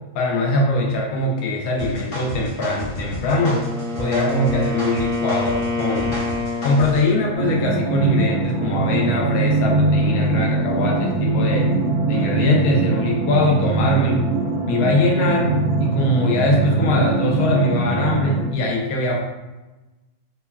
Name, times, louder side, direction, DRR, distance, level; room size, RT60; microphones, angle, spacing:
voice 1, 0.1-3.6 4.0-6.2 6.6-11.7 12.1-14.2 14.7-19.2, left 2 dB, 80° left, -1 dB, 1.1 m, -22 dB
sound 1, 1.8-7.1, left 1 dB, 55° left, 0.6 m, -32 dB
Wind instrument woodwind instrument, 3.2-7.1, left 3 dB, 5° right, 0.6 m, -26 dB
sound 2, 7.3-18.4, right 3 dB, 70° right, 0.5 m, -21 dB
3.0 x 2.2 x 2.2 m, 1.1 s
omnidirectional pair, 1.5 m